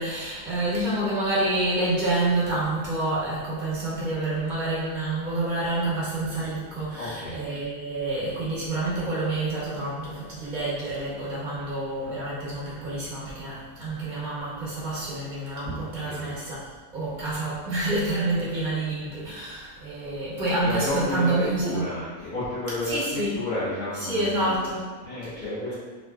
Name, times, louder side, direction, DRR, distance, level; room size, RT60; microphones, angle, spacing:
voice 1, 0.0-16.6 16.9-21.8 22.9-23.4 24.0-24.9, right 2 dB, 40° right, -8 dB, 0.7 m, -28 dB
voice 2, 6.9-7.4 15.6-16.3 20.6-24.7 25.0-25.7, left 1 dB, 80° left, -12 dB, 1.6 m, -31 dB
3.8 x 2.5 x 2.2 m, 1.4 s
omnidirectional pair, 1.7 m